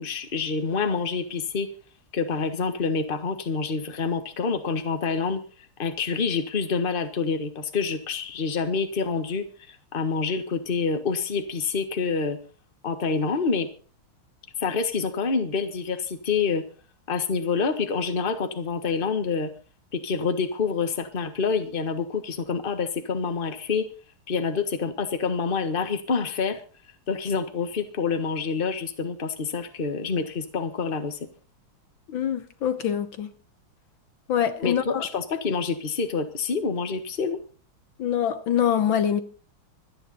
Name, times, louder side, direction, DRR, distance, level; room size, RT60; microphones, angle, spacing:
voice 1, 0.0-1.7 2.1-5.4 5.8-12.4 12.8-13.7 14.6-16.6 17.1-19.5 19.9-23.9 24.3-26.6 27.1-31.2 34.6-37.4, left 5 dB, 25° left, 1.5 m, -27 dB
voice 2, 32.1-33.3 34.3-35.1 38.0-39.2, left 9 dB, 70° left, 1.7 m, -24 dB
25.5 x 10.0 x 4.2 m
omnidirectional pair, 2.4 m